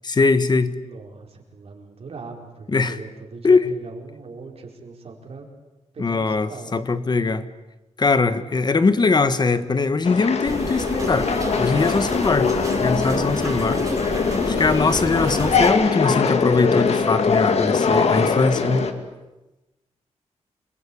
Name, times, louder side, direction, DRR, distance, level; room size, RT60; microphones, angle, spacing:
voice 1, 0.0-0.7 2.7-3.0 3.4-3.7 6.0-7.5 8.0-11.3 11.6-12.5 12.8-13.9 14.5-18.8, left 4 dB, 35° left, 13 dB, 1.4 m, -21 dB
voice 2, 0.8-5.5 5.9-6.9 17.9-18.9, right 4 dB, 60° right, 2 dB, 4.7 m, -40 dB
sound 1, 10.0-18.9, left 5 dB, 65° left, 2.2 m, -22 dB
sound 2, 10.4-15.7, right 3 dB, 30° right, 3.5 m, -31 dB
27.5 x 22.0 x 8.7 m, 1.0 s
wide cardioid pair, 135°, 12 cm